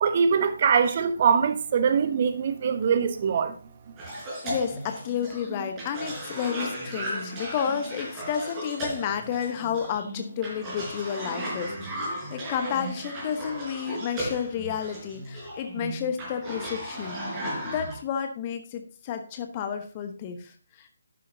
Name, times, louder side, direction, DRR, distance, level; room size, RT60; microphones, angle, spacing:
voice 1, 0.0-3.5, right 6 dB, 35° right, 1.1 m, -23 dB
Cough, 4.0-17.9, right 1 dB, 15° right, 4.5 m, -35 dB
voice 2, 4.4-20.9, left 8 dB, 25° left, 1.1 m, -31 dB
11.5 x 9.9 x 2.8 m
figure-of-eight pair, 145°, 0 cm